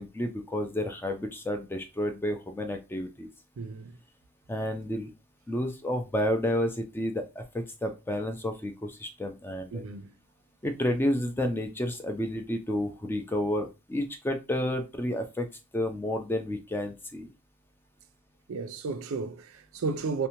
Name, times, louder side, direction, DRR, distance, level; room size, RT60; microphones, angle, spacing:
voice 1, 0.0-3.3 4.5-5.1 5.5-9.8 10.6-15.5 15.7-17.3, left 1 dB, 10° left, 0.3 m, -31 dB
voice 2, 3.6-4.0 9.7-10.1 18.5-20.3, right 4 dB, 65° right, 0.4 m, -33 dB
2.7 x 2.1 x 2.8 m
head